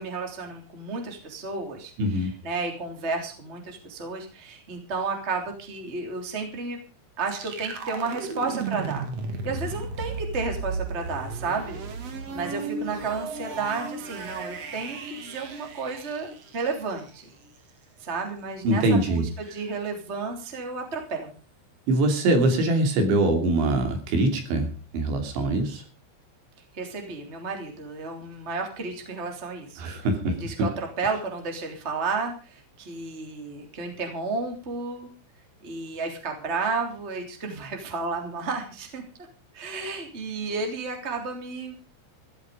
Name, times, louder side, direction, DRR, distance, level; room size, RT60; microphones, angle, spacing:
voice 1, 0.0-6.8 7.2-9.1 9.4-11.8 12.3-17.3 18.0-21.4 26.7-35.1 35.6-39.0 39.5-41.7, right 4 dB, 15° right, 3 dB, 2.8 m, -32 dB
voice 2, 2.0-2.3 18.6-19.2 21.9-24.7 24.9-25.8 29.8-30.3, right 1 dB, 70° right, 5 dB, 5.1 m, -23 dB
sound 1, 7.3-17.1, right 4 dB, 50° right, 2.0 m, -35 dB
15.5 x 12.5 x 5.2 m, 0.35 s
omnidirectional pair, 5.6 m